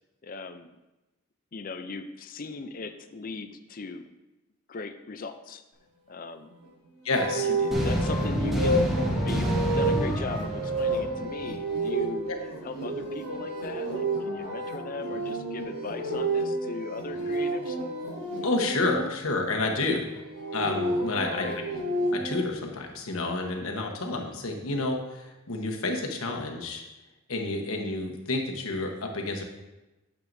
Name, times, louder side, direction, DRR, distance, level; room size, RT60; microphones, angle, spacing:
voice 1, 0.2-0.8 1.5-4.0 4.7-5.6 6.1-6.5 7.5-12.3 12.6-17.8 19.8-20.0 21.2-21.6, left 3 dB, 40° left, 9 dB, 0.5 m, -38 dB
voice 2, 7.0-7.5 12.3-12.4 18.4-20.0 20.5-21.5 22.1-26.8 27.3-29.4, left 2 dB, 70° left, 1 dB, 1.2 m, -29 dB
sound 1, 7.1-19.0 20.2-22.4, right 2 dB, 90° right, 2.7 m, -30 dB
sound 2, 7.7-11.7, equal, ahead, 1.1 m, -28 dB
9.0 x 7.5 x 2.7 m, 1.0 s
head